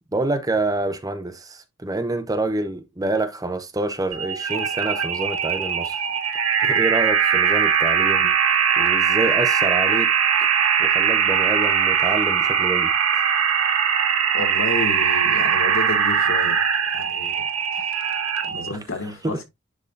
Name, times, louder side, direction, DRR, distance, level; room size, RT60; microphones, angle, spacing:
voice 1, 0.1-6.1 6.6-8.3 8.8-10.1 10.4-10.5 10.8-12.9 18.7-18.8 19.2-19.4, right 2 dB, 15° right, 0.7 m, -27 dB
sound 1, 4.1-18.7, right 7 dB, 80° right, 1.1 m, -21 dB
voice 2, 14.3-16.6 16.9-17.5 17.7-18.1 18.4-19.4, left 2 dB, 65° left, 2.1 m, -31 dB
10.5 x 3.6 x 2.5 m
head